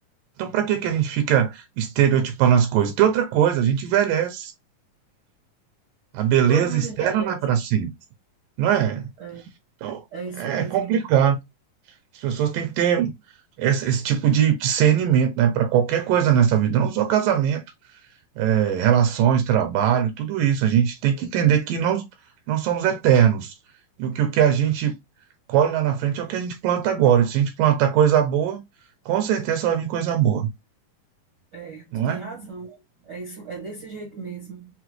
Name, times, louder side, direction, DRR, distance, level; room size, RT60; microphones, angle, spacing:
voice 1, 0.4-4.5 6.1-7.9 8.6-9.1 9.8-10.0 10.4-11.4 12.1-13.1 13.6-17.6 18.4-22.0 22.5-23.5 24.0-25.0 25.5-28.6 29.1-30.5 31.9-32.2, right 9 dB, 85° right, 2.4 m, -21 dB
voice 2, 6.5-7.4 9.2-9.4 10.1-11.0 31.5-34.7, right 5 dB, 65° right, 1.0 m, -35 dB
5.8 x 2.2 x 2.9 m
omnidirectional pair, 3.9 m